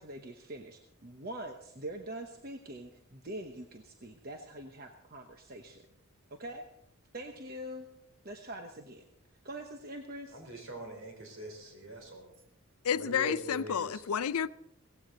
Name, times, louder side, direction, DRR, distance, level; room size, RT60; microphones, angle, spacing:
voice 1, 0.0-5.8 6.3-6.7 7.1-7.9 8.2-9.1 9.4-10.4, right 1 dB, 40° right, 1.0 m, -44 dB
voice 2, 10.3-12.3 12.9-14.0, right 2 dB, 65° right, 3.8 m, -43 dB
voice 3, 12.8-14.5, left 8 dB, 85° left, 0.5 m, -30 dB
17.5 x 15.5 x 3.9 m
head